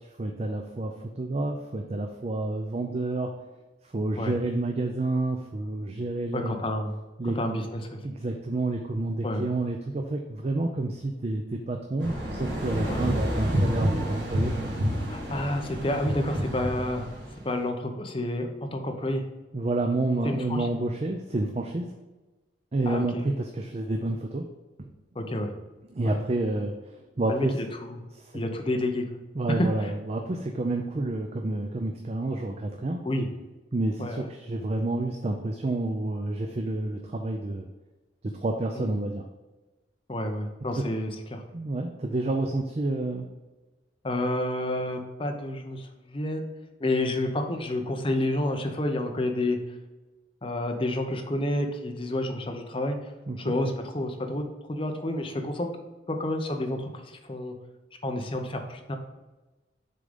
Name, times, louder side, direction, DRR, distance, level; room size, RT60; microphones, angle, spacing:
voice 1, 0.2-3.3 3.9-6.6 7.2-7.4 8.0-14.8 19.5-21.9 22.7-24.5 24.8-24.9 25.9-26.7 27.2-27.5 28.1-28.3 29.4-33.0 33.7-37.7 38.3-39.2 40.8-40.9 41.5-43.3 53.3-53.5, right 2 dB, 35° right, 3 dB, 0.5 m, -29 dB
voice 2, 6.3-6.9 7.4-8.0 9.2-9.5 12.9-13.1 15.1-17.1 17.4-19.2 20.2-20.7 22.9-23.2 25.2-25.5 26.0-26.2 27.3-28.1 28.3-29.0 29.6-29.9 33.0-33.3 34.0-34.3 38.8-38.9 40.1-41.4 44.0-46.4 46.8-49.6 50.4-53.0 53.4-54.4 54.7-55.7 56.1-57.6 58.0-59.0, left 1 dB, 30° left, 4 dB, 0.8 m, -29 dB
sound 1, 12.0-17.4, equal, 80° right, 1.8 m, -29 dB
6.5 x 3.8 x 5.3 m, 1.1 s
head